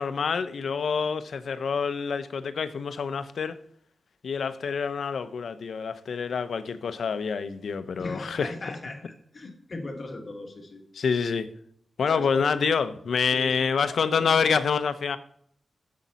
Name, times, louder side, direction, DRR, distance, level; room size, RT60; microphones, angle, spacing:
voice 1, 0.0-3.6 4.2-8.5 10.9-11.5 12.0-15.2, left 6 dB, 70° left, 0.6 m, -27 dB
voice 2, 8.0-10.8 12.1-12.3 13.3-14.4, left 2 dB, 35° left, 1.4 m, -39 dB
8.3 x 7.3 x 4.0 m
wide cardioid pair, 170°, 0 cm